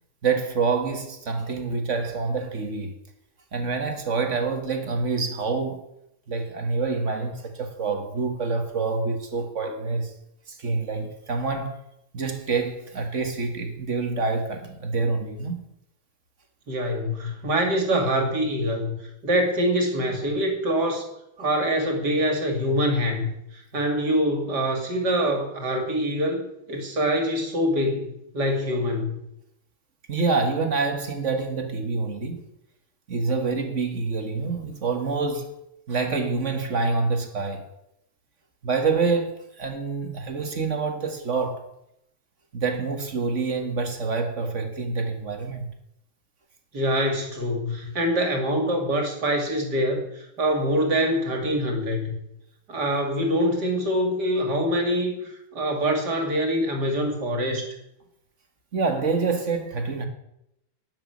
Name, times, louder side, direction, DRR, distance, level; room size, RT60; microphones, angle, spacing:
voice 1, 0.2-2.9 3.5-5.8 6.3-10.1 10.5-11.8 12.1-15.6 30.1-32.4 33.1-35.5 35.9-37.7 38.6-41.6 42.5-45.7 58.7-60.1, right 4 dB, 40° right, 1.9 m, -26 dB
voice 2, 16.7-21.1 21.4-26.4 26.7-29.2 46.7-52.1 52.7-55.1 55.5-57.7, equal, 55° right, 3.3 m, -24 dB
12.5 x 7.3 x 9.5 m
omnidirectional pair, 2.1 m